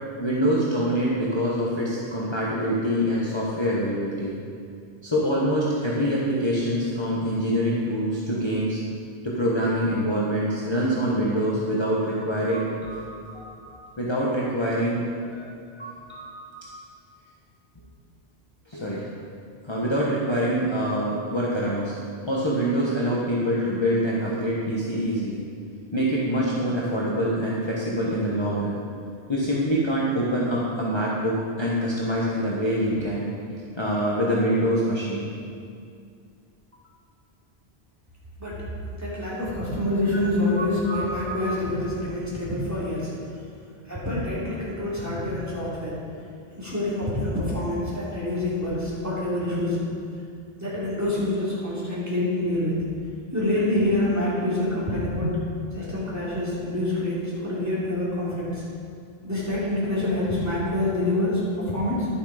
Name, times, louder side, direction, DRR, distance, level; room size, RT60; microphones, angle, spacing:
voice 1, 0.2-4.3 5.0-8.8 9.2-15.1 15.3-16.6 18.7-19.1 19.6-21.9 22.3-25.4 25.9-28.8 29.3-33.3 33.7-35.3 40.5-41.5, equal, 25° left, -6 dB, 1.1 m, -25 dB
voice 2, 38.9-43.1 43.9-46.0 46.6-49.8 50.6-52.8 53.3-55.3 55.7-58.6 59.2-62.1, left 1 dB, 15° right, -9 dB, 3.0 m, -26 dB
11.0 x 7.1 x 4.9 m, 2.3 s
omnidirectional pair, 1.1 m